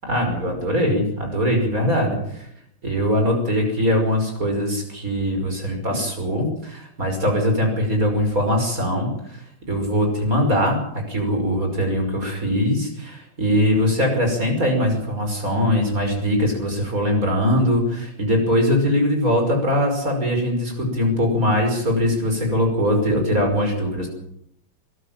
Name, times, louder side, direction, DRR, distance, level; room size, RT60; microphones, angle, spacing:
voice 1, 0.0-2.5 2.8-9.4 9.7-10.8 11.1-24.1, equal, 40° right, 3 dB, 6.1 m, -21 dB
21.5 x 14.0 x 9.0 m, 0.73 s
omnidirectional pair, 2.3 m